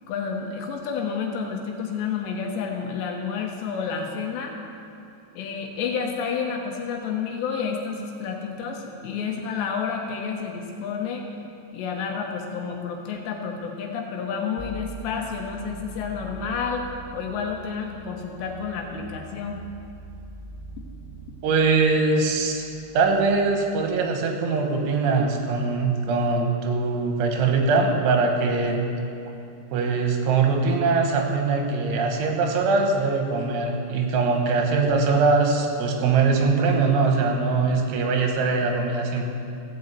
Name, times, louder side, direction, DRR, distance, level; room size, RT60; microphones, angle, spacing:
voice 1, 0.1-4.5 5.4-11.2 11.7-19.6, left 6 dB, 75° left, 1 dB, 3.1 m, -30 dB
sound 1, 14.6-24.2, right 1 dB, 90° left, 3.5 m, -43 dB
voice 2, 21.4-22.6 22.9-28.8 29.7-39.3, right 4 dB, 85° right, 2 dB, 3.6 m, -22 dB
15.5 x 5.5 x 8.1 m, 2.6 s
omnidirectional pair, 5.4 m